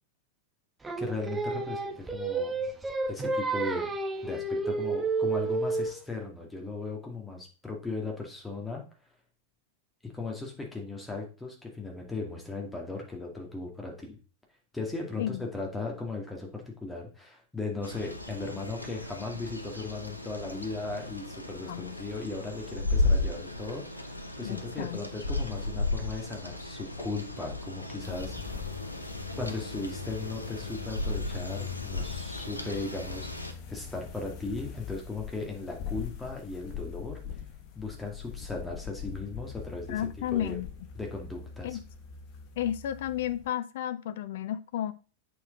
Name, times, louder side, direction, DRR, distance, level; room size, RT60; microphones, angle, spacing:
Singing, 0.8-6.0, right 3 dB, 10° right, 0.9 m, -30 dB
voice 1, 1.0-2.7 3.1-4.0 4.2-8.8 10.0-14.2 14.7-28.5 29.3-37.2 37.8-40.6 40.9-41.8, left 3 dB, 10° left, 2.1 m, -37 dB
sound 1, 17.8-33.5, left 2 dB, 85° left, 0.9 m, -35 dB
voice 2, 24.4-25.0 39.9-40.7 41.6-41.8 42.6-44.9, left 11 dB, 55° left, 0.6 m, -32 dB
sound 2, 28.0-43.5, left 7 dB, 40° left, 1.2 m, -42 dB
8.2 x 4.7 x 3.8 m
figure-of-eight pair, 90°, 0 cm